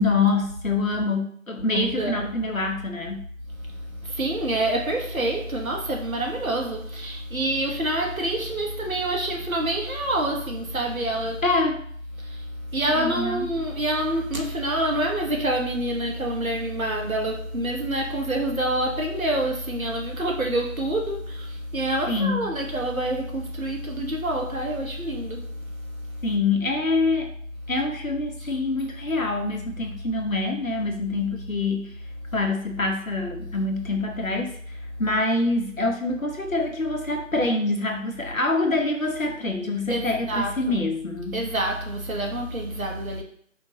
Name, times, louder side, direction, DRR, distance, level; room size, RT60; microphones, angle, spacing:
voice 1, 0.0-3.2 11.4-11.8 12.9-13.5 22.1-22.5 26.2-27.3 27.7-31.9 32.3-41.4, left 3 dB, 80° left, 1.0 m, -25 dB
voice 2, 1.7-2.3 3.6-11.6 12.2-26.4 28.4-28.6 39.9-40.8 41.3-43.2, right 1 dB, 85° right, 1.1 m, -27 dB
4.5 x 2.9 x 2.8 m
figure-of-eight pair, 180°, 40 cm